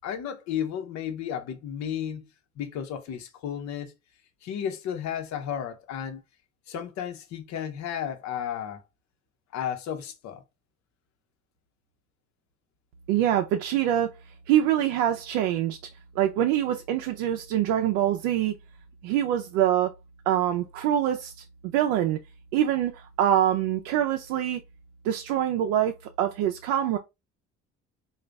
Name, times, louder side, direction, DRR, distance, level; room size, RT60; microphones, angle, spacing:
voice 1, 0.0-2.3 2.6-3.9 4.4-6.2 6.7-8.8 9.5-10.4, left 9 dB, 70° left, 0.9 m, -33 dB
voice 2, 13.1-14.1 14.5-15.8 16.1-18.5 19.0-19.9 20.3-22.2 22.5-24.6 25.0-27.0, right 11 dB, 90° right, 0.5 m, -25 dB
3.9 x 2.4 x 3.4 m
supercardioid pair, 75°, 29 cm